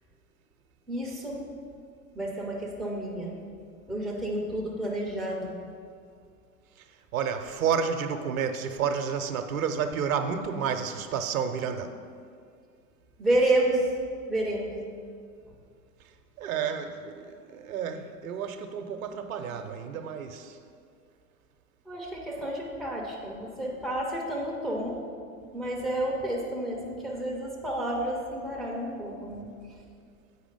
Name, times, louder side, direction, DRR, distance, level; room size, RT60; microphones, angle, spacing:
voice 1, 0.9-1.4 2.1-3.4 3.9-5.6 13.2-13.9 14.3-14.8 21.9-25.0 25.5-29.5, right 1 dB, ahead, -4 dB, 0.3 m, -30 dB
voice 2, 7.1-11.9 16.4-20.6, right 7 dB, 65° right, 7 dB, 0.7 m, -30 dB
8.2 x 4.9 x 5.1 m, 2.3 s
figure-of-eight pair, 90°, 46 cm